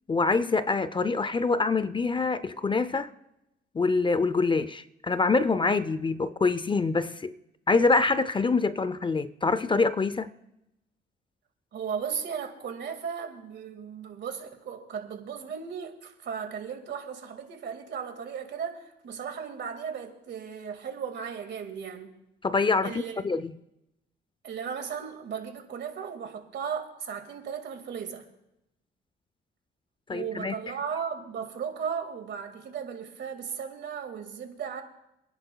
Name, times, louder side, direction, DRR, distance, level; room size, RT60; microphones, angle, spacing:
voice 1, 0.1-3.1 3.7-7.4 7.7-10.3 22.4-23.5 30.1-30.5, left 3 dB, 25° left, 0.5 m, -25 dB
voice 2, 11.7-22.1 22.8-23.2 24.4-28.3 30.1-34.8, right 7 dB, 60° right, 2.0 m, -36 dB
27.5 x 10.5 x 2.3 m
cardioid pair, 90°, 20 cm